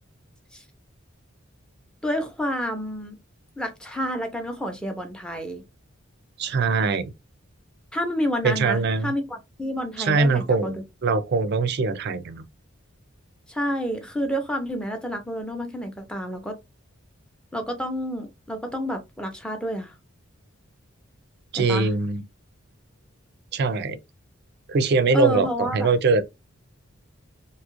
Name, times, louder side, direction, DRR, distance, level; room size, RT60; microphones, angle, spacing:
voice 1, 2.0-3.2 3.6-5.6 7.9-10.8 13.5-16.6 17.5-19.9 21.5-21.9 25.1-25.9, equal, 5° left, 0.6 m, -29 dB
voice 2, 6.4-7.1 8.4-9.1 10.0-10.8 11.0-12.4 21.5-22.2 23.5-24.0 24.7-26.2, right 4 dB, 55° right, 0.4 m, -22 dB
2.7 x 2.4 x 2.9 m
head